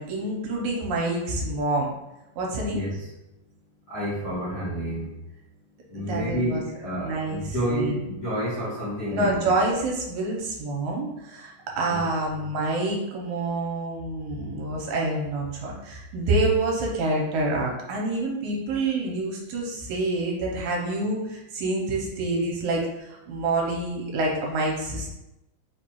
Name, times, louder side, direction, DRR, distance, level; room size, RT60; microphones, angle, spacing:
voice 1, 0.0-1.9 2.4-2.8 5.9-6.6 7.0-8.0 9.1-25.1, right 2 dB, 75° right, -1 dB, 2.1 m, -27 dB
voice 2, 2.6-3.0 3.9-5.1 5.9-9.5 11.9-12.0, equal, 60° left, -11 dB, 1.0 m, -29 dB
4.9 x 2.3 x 4.4 m, 0.91 s
omnidirectional pair, 3.6 m